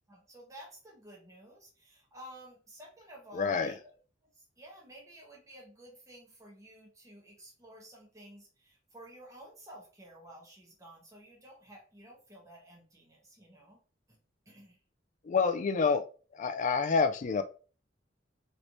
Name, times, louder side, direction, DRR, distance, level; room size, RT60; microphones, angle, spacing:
voice 1, 0.1-3.8 4.3-13.8 14.1-14.2 14.4-14.8, right 1 dB, 15° right, 1.1 m, -52 dB
voice 2, 3.3-3.7 15.2-16.0 16.3-17.4, left 5 dB, 40° left, 0.3 m, -27 dB
3.1 x 3.1 x 2.6 m
head